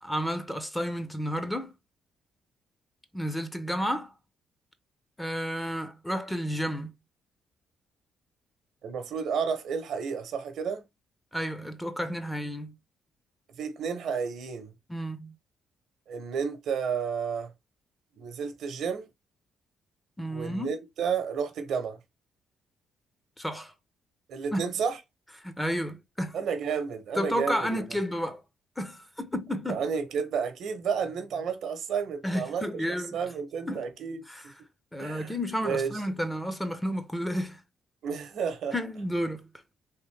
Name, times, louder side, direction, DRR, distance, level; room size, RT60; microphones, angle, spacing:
voice 1, 0.0-1.7 3.1-4.1 5.2-6.9 11.3-12.7 14.9-15.3 20.2-20.7 23.4-23.7 24.5-24.7 25.4-26.4 27.2-28.4 28.8-29.8 32.2-33.2 33.7-33.8 34.3-34.4 34.9-37.6 38.7-39.5, equal, 10° left, 0.6 m, -31 dB
voice 2, 8.8-10.8 13.6-14.7 16.1-17.5 18.1-19.1 20.3-22.0 24.3-25.0 26.3-28.0 29.7-34.2 35.0-36.0 38.0-38.7, right 6 dB, 70° right, 0.8 m, -31 dB
3.5 x 2.5 x 3.2 m
cardioid pair, 90°, 0 cm